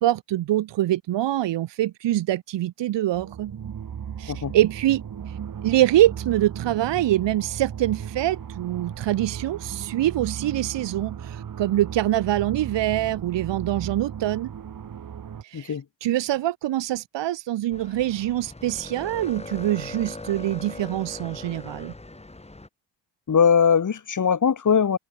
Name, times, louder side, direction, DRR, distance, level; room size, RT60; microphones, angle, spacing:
voice 1, 0.0-3.5 4.2-5.4 5.6-14.5 15.4-21.9, right 14 dB, 70° right, 1.5 m, -24 dB
sound 1, 3.1-15.4, right 8 dB, 45° right, 2.1 m, -36 dB
voice 2, 15.5-15.8 23.3-25.0, left 7 dB, 40° left, 2.8 m, -20 dB
sound 2, 17.7-22.7, left 2 dB, 15° left, 3.9 m, -40 dB
cardioid pair, 80°, 45 cm